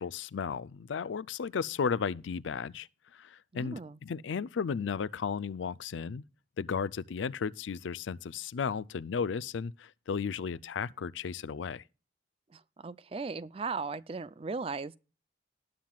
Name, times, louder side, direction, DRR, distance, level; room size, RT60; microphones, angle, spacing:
voice 1, 0.0-2.9 3.1-6.2 6.6-11.8, left 6 dB, 85° left, 0.4 m, -34 dB
voice 2, 3.5-4.0 12.5-15.0, right 4 dB, 30° right, 0.4 m, -37 dB
19.0 x 7.5 x 2.3 m
head